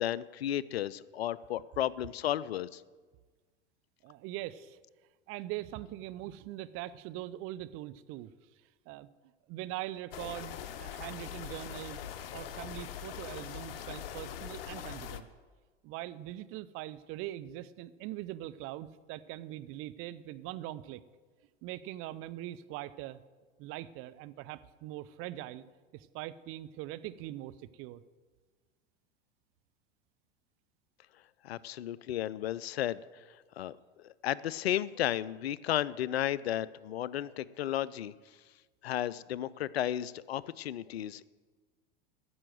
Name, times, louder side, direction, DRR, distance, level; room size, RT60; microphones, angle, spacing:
voice 1, 0.0-2.8 31.4-33.2 33.6-38.1 38.8-41.3, left 12 dB, 80° left, 20 dB, 0.5 m, -33 dB
voice 2, 4.0-4.8 5.3-8.3 8.9-9.1 9.5-12.0 12.3-15.3 15.8-21.0 21.6-23.2 23.6-25.6 25.9-28.0, right 14 dB, 45° right, 14 dB, 0.6 m, -42 dB
sound 1, 10.1-15.2, left 9 dB, 65° left, 0.9 m, -42 dB
14.0 x 6.2 x 7.8 m, 1.4 s
hypercardioid pair, 90°, 31 cm